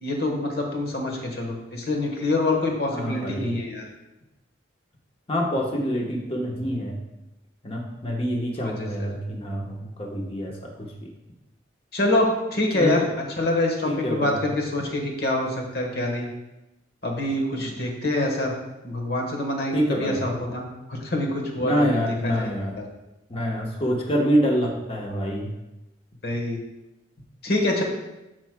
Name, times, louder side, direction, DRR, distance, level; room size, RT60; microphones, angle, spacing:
voice 1, 0.0-3.9 8.5-9.1 11.9-13.0 13.4-16.3 17.0-18.5 18.8-22.0 22.2-22.4 26.2-26.6 27.4-27.8, left 2 dB, 60° left, 1 dB, 1.2 m, -26 dB
voice 2, 2.9-3.5 5.3-6.9 7.6-11.1 12.7-13.1 13.8-14.3 17.6-17.7 19.7-20.2 21.6-22.8 23.3-25.5, equal, 30° left, 0 dB, 1.1 m, -26 dB
12.0 x 4.7 x 2.2 m, 0.97 s
head